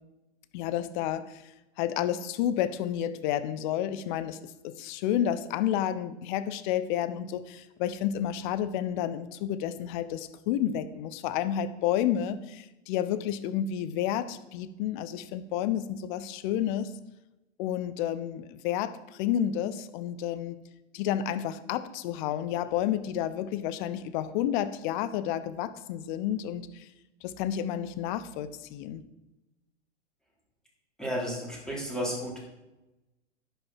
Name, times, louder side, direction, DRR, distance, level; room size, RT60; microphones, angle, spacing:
voice 1, 0.5-1.4 1.8-16.9 17.6-20.6 20.9-26.9 27.2-29.0, left 10 dB, 40° left, 13 dB, 0.9 m, -30 dB
voice 2, 31.0-32.4, equal, ahead, -4 dB, 3.9 m, -32 dB
10.5 x 9.1 x 4.4 m, 0.97 s
hypercardioid pair, 110°, 36 cm